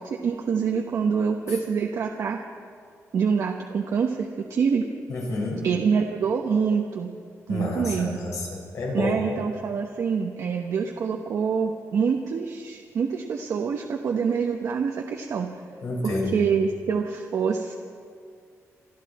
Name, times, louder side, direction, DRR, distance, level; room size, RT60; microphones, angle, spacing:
voice 1, 0.0-2.4 3.1-4.8 5.6-7.1 7.5-8.2 8.9-15.5 16.0-17.7, right 6 dB, 70° right, 2 dB, 1.0 m, -26 dB
voice 2, 5.1-5.7 7.5-9.1 15.8-16.4, left 2 dB, 80° left, -2 dB, 5.6 m, -29 dB
27.0 x 12.5 x 4.3 m, 2.1 s
wide cardioid pair, 135°, 6 cm